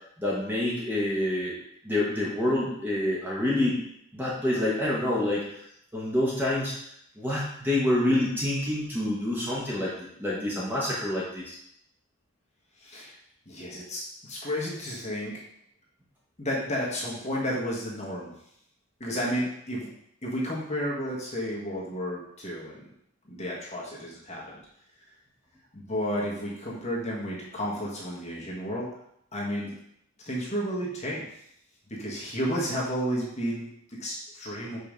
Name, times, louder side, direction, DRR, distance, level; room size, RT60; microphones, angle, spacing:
voice 1, 0.2-1.5 1.8-3.8 4.1-5.4 5.9-6.7 7.2-11.6, left 1 dB, 10° right, -5 dB, 1.2 m, -27 dB
voice 2, 12.8-13.2 13.4-15.4 16.4-18.3 19.0-19.9 20.2-22.8 23.2-24.6 25.7-28.9 29.3-29.7 30.2-31.3 31.9-34.8, equal, 30° left, -5 dB, 1.5 m, -32 dB
5.4 x 3.9 x 5.2 m, 0.73 s
head